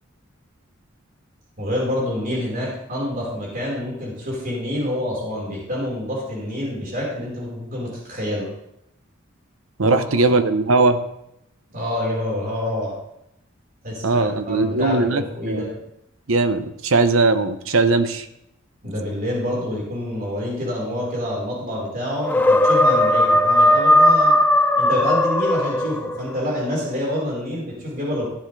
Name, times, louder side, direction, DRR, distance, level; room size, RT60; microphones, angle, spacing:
voice 1, 1.6-8.5 9.8-10.3 11.7-12.9 13.8-15.8 18.8-24.4 24.8-28.3, left 1 dB, 40° right, -4 dB, 4.5 m, -27 dB
voice 2, 9.8-11.0 14.0-15.7 16.3-18.3, right 3 dB, 75° right, 10 dB, 0.9 m, -19 dB
sound 1, 22.2-26.3, left 1 dB, 10° left, 0.6 m, -17 dB
14.5 x 9.9 x 3.3 m, 0.80 s
head